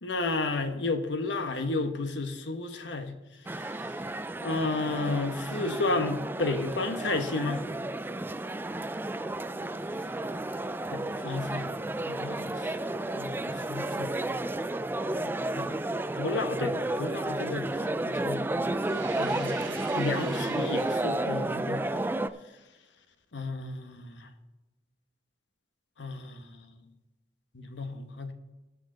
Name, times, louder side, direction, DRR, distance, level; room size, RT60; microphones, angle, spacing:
voice 1, 0.0-3.2 4.4-7.6 10.9-11.8 12.1-12.5 13.2-14.1 15.2-15.7 16.1-17.7 18.0-18.4 19.2-19.6 19.9-21.9 23.3-24.3 26.0-26.5 27.5-28.3, left 3 dB, 85° left, 7 dB, 1.2 m, -32 dB
sound 1, 3.5-22.3, right 2 dB, 10° right, 0.3 m, -32 dB
sound 2, 18.8-21.5, right 5 dB, 85° right, 2.7 m, -44 dB
19.0 x 6.4 x 3.9 m, 1.1 s
head